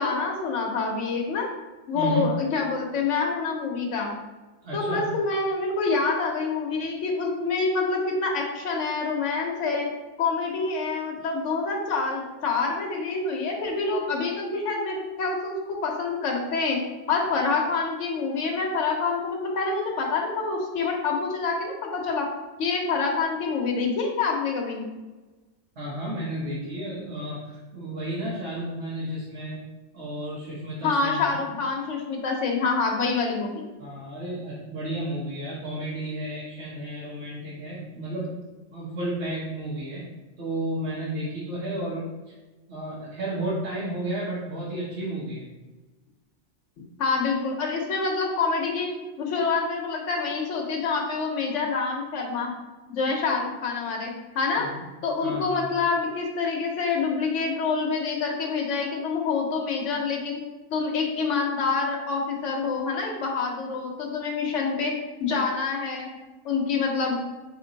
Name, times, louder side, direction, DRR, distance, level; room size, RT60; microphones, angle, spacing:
voice 1, 0.0-1.5 1.9-4.1 4.7-9.9 10.2-16.8 17.1-22.3 22.6-24.9 30.8-33.6 47.0-48.9 49.2-52.5 52.9-54.7 55.0-60.4 60.7-64.9 65.2-66.1 66.4-67.2, left 4 dB, 70° left, 1 dB, 1.1 m, -26 dB
voice 2, 1.9-2.3 4.6-5.1 25.8-29.6 29.9-31.6 33.8-38.4 38.7-40.0 40.4-42.3 42.7-45.5 54.5-54.8 55.2-55.7, right 1 dB, 60° right, -8 dB, 1.3 m, -32 dB
4.4 x 3.1 x 3.9 m, 1.2 s
omnidirectional pair, 1.3 m